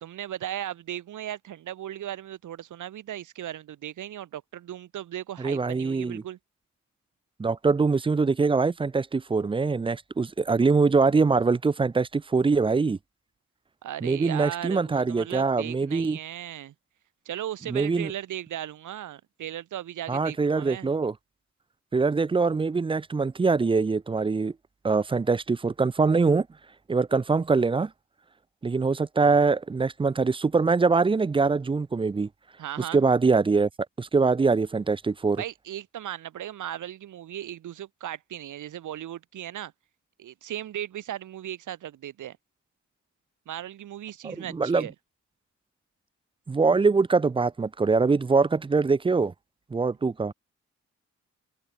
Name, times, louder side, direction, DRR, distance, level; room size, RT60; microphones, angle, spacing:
voice 1, 0.0-6.4 13.8-16.7 17.2-20.9 32.6-33.0 35.4-39.7 40.2-42.4 43.5-44.9, right 11 dB, 85° right, 0.9 m, -37 dB
voice 2, 5.4-6.2 7.4-13.0 14.0-16.2 17.7-18.1 20.1-21.1 21.9-24.5 24.8-26.5 26.9-27.9 28.6-32.3 32.9-33.7 34.0-35.4 44.2-44.9 46.5-49.3 49.7-50.3, right 4 dB, 20° right, 0.4 m, -23 dB
cardioid pair, 80°, 30 cm